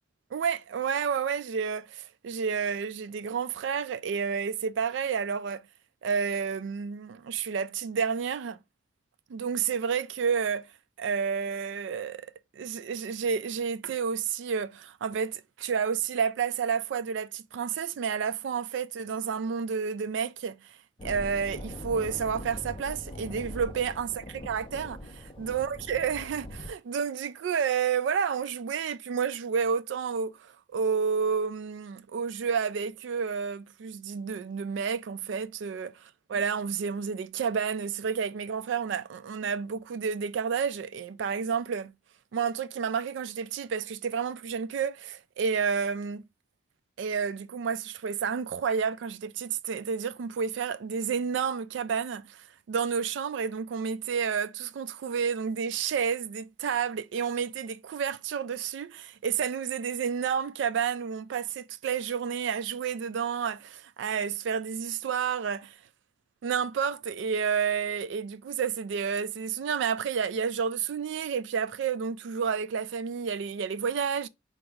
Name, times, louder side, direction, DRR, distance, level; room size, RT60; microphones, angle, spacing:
voice 1, 0.3-5.6 6.0-8.6 9.3-10.7 11.0-12.3 12.5-20.6 21.0-35.9 36.3-41.9 42.3-46.2 47.0-65.8 66.4-74.3, right 6 dB, 75° right, 0.3 m, -30 dB
sound 1, 21.0-26.7, left 1 dB, 25° left, 0.4 m, -41 dB
4.3 x 2.0 x 3.4 m
head